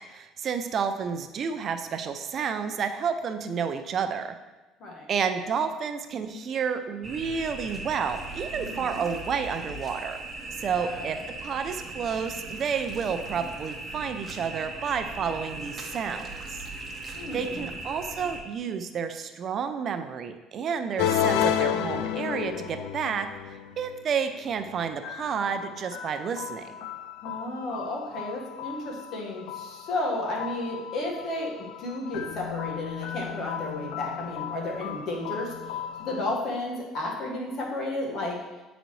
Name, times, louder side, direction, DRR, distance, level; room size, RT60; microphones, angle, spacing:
voice 1, 0.1-4.3 5.1-10.2 10.6-16.6 17.3-26.8, right 6 dB, 45° right, 8 dB, 0.5 m, -30 dB
sound 1, 7.0-18.4, right 2 dB, 25° right, 1.0 m, -38 dB
voice 2, 8.6-9.0 10.7-11.1 17.1-17.7 27.2-38.4, left 2 dB, 55° left, -1 dB, 1.5 m, -33 dB
sound 2, 21.0-36.4, left 10 dB, 85° left, 0.3 m, -33 dB
8.8 x 4.0 x 3.1 m, 1.1 s
supercardioid pair, 100°, 0 cm